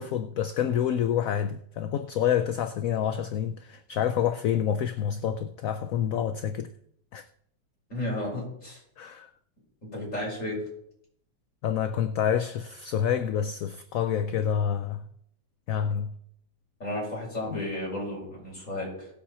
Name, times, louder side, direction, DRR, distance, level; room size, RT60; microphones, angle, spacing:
voice 1, 0.0-6.7 7.1-7.2 9.0-9.3 11.6-15.0 15.7-16.2 17.5-17.6, left 9 dB, 65° left, 0.9 m, -28 dB
voice 2, 7.9-8.8 9.8-10.6 16.8-19.1, left 1 dB, 45° left, 6.6 m, -33 dB
18.0 x 7.5 x 4.3 m
omnidirectional pair, 1.9 m